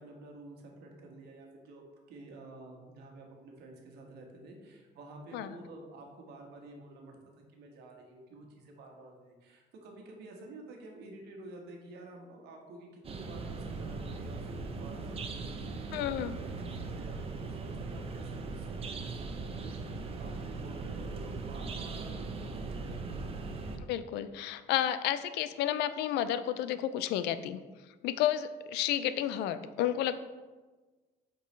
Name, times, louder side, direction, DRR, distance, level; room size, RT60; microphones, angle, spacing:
voice 1, 0.0-1.8 2.1-7.2 7.5-23.2, right 2 dB, 75° right, 1 dB, 1.4 m, -50 dB
sound 1, 13.0-23.8, right 3 dB, 35° right, 0.7 m, -39 dB
voice 2, 15.9-16.3 23.9-27.6 28.0-30.2, left 11 dB, 85° left, 12 dB, 0.4 m, -31 dB
8.0 x 4.5 x 3.2 m, 1.3 s
cardioid pair, 110°, 17 cm